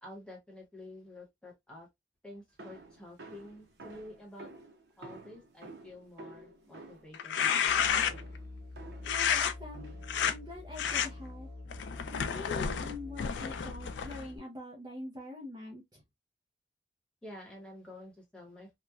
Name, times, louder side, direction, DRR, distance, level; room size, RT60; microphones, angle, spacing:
voice 1, 0.0-1.9 2.2-4.5 5.0-7.7 17.2-18.8, left 1 dB, 5° left, 1.0 m, -49 dB
sound 1, 2.6-9.2 9.7-10.2 10.8-11.3, right 2 dB, 70° right, 0.6 m, -51 dB
sound 2, 7.1-8.4 9.1-9.5 10.0-10.3 10.8-11.1 11.7-14.3, left 8 dB, 85° left, 0.3 m, -30 dB
Musical instrument, 7.6-14.4, left 2 dB, 50° right, 1.2 m, -46 dB
voice 2, 9.0-9.9 10.2-11.5 12.1-16.0, left 2 dB, 25° right, 0.5 m, -44 dB
2.9 x 2.1 x 2.2 m
head